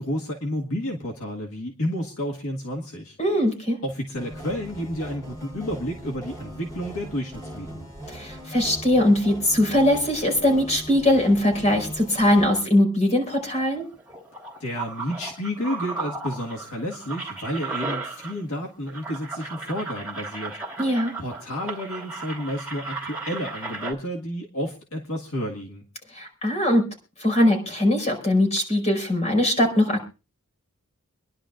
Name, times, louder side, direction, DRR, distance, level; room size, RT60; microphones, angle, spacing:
voice 1, 0.0-3.2 3.8-7.9 14.6-20.6 21.2-25.8, equal, 75° left, 0 dB, 1.8 m, -31 dB
voice 2, 3.2-3.8 8.1-13.8 20.8-21.1 26.1-26.8 27.2-30.1, left 1 dB, 35° left, 3 dB, 5.1 m, -21 dB
sound 1, 4.2-12.5, right 1 dB, 15° left, 4.6 m, -40 dB
sound 2, 13.5-18.6 18.9-23.9, right 3 dB, 5° right, 3.0 m, -35 dB
27.0 x 11.0 x 2.5 m, 0.31 s
head